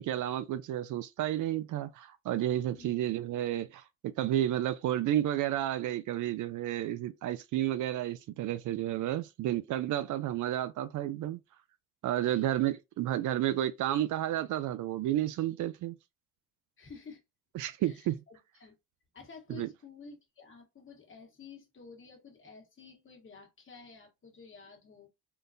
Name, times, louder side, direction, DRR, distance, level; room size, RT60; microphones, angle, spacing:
voice 1, 0.0-11.4 12.0-15.9 17.5-18.2 19.5-19.7, right 12 dB, 65° right, 0.5 m, -31 dB
voice 2, 12.2-12.7 16.8-17.2 17.8-18.7 19.1-25.1, left 5 dB, 40° left, 1.3 m, -51 dB
3.8 x 2.2 x 2.6 m
cardioid pair, 90°, 33 cm